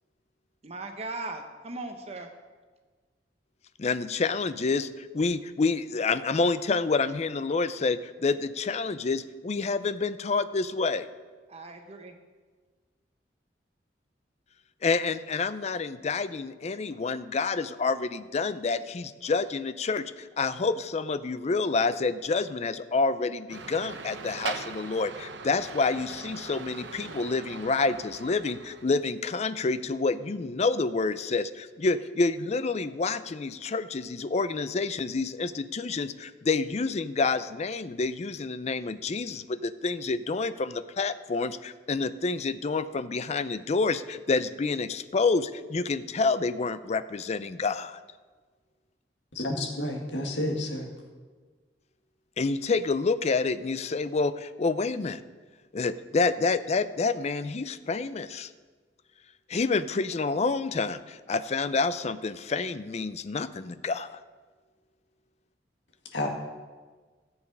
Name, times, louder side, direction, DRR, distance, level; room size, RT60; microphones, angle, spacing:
voice 1, 0.6-2.3 11.5-12.2, right 2 dB, 35° right, 5 dB, 0.9 m, -38 dB
voice 2, 3.8-11.1 14.8-48.0 52.4-55.2 55.7-58.5 59.5-64.2, left 4 dB, 40° left, 13 dB, 0.4 m, -28 dB
sound 1, 23.5-28.9, right 5 dB, 80° right, 0.8 m, -40 dB
voice 3, 49.4-50.9 66.1-66.3, left 1 dB, 80° left, 1 dB, 2.0 m, -30 dB
13.5 x 7.3 x 5.4 m, 1.4 s
head